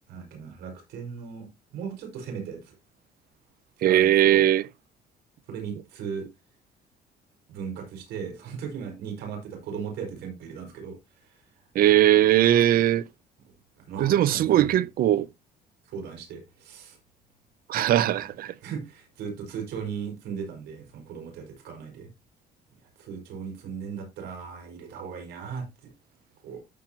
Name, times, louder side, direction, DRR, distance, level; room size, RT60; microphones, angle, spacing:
voice 1, 0.1-1.5 1.7-2.7 3.8-4.4 5.5-6.3 7.5-11.5 13.8-14.8 15.8-17.0 18.6-22.1 23.0-25.9 26.4-26.6, right 6 dB, 80° right, 5.2 m, -37 dB
voice 2, 3.8-4.6 11.7-13.0 14.0-15.3 17.7-18.5, right 12 dB, 60° right, 0.6 m, -20 dB
14.0 x 5.8 x 2.9 m
cardioid pair, 110°, 17 cm